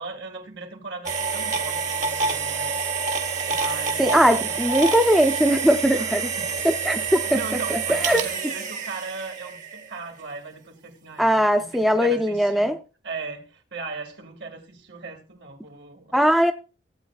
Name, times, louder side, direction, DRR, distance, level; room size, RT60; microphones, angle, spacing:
voice 1, 0.0-2.8 3.4-4.6 5.9-6.5 7.3-12.7 13.0-16.1, right 4 dB, 85° right, 2.0 m, -38 dB
sound 1, 1.1-10.0, right 5 dB, 45° right, 1.2 m, -27 dB
voice 2, 4.0-6.3 6.6-7.4 7.7-8.2 11.2-12.8 16.1-16.5, equal, ahead, 0.5 m, -20 dB
16.0 x 8.3 x 2.4 m
head